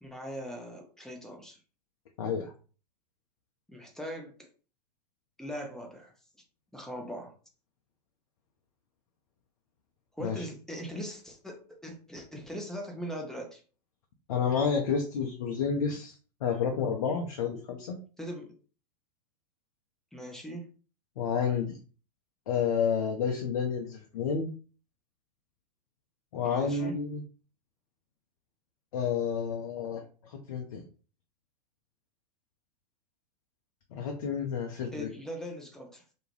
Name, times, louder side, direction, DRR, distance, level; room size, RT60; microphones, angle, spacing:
voice 1, 0.0-1.6 3.7-4.5 5.4-6.1 6.7-7.3 10.1-13.6 18.2-18.6 20.1-20.7 26.4-27.0 34.9-36.0, equal, ahead, 2 dB, 0.5 m, -40 dB
voice 2, 2.2-2.5 10.2-10.4 14.3-18.0 21.2-21.8 22.5-24.5 26.3-27.2 28.9-30.8 33.9-35.1, left 6 dB, 55° left, 1 dB, 0.5 m, -30 dB
2.3 x 2.1 x 3.1 m, 0.38 s
figure-of-eight pair, 95°, 21 cm